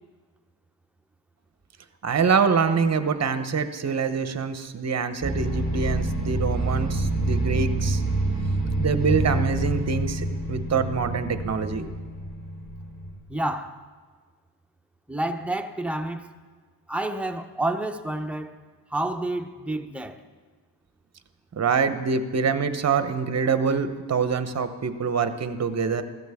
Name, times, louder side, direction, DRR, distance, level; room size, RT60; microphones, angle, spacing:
voice 1, 2.0-8.0 8.8-11.9 21.5-26.0, right 5 dB, 40° right, 0.8 m, -25 dB
sound 1, 5.2-13.1, right 2 dB, 20° left, 4.7 m, -27 dB
voice 2, 13.3-13.8 15.1-16.3 16.9-18.5 18.9-20.2, right 1 dB, 5° right, 0.7 m, -29 dB
14.5 x 13.5 x 3.5 m
wide cardioid pair, 110°, 41 cm